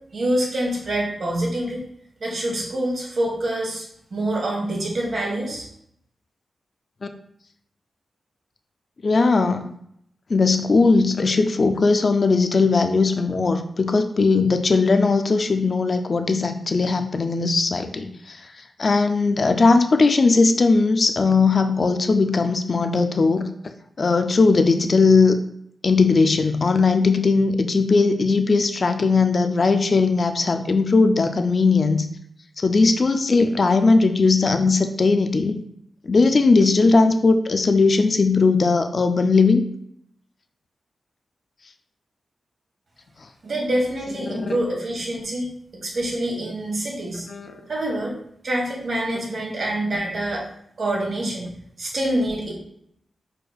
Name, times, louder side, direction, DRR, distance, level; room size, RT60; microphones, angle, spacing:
voice 1, 0.1-1.8 2.2-5.6 43.4-45.5 45.8-47.3 47.7-48.1 48.4-50.4 50.8-51.5 51.8-52.5, right 1 dB, 65° right, -2 dB, 1.6 m, -26 dB
voice 2, 9.0-9.6 10.3-18.4 18.8-23.4 24.0-25.4 25.8-32.1 32.6-35.6 36.1-39.6 44.3-44.5 47.3-47.6, left 4 dB, 50° left, 7 dB, 0.4 m, -18 dB
4.8 x 4.4 x 2.3 m, 0.70 s
wide cardioid pair, 80°, 0 cm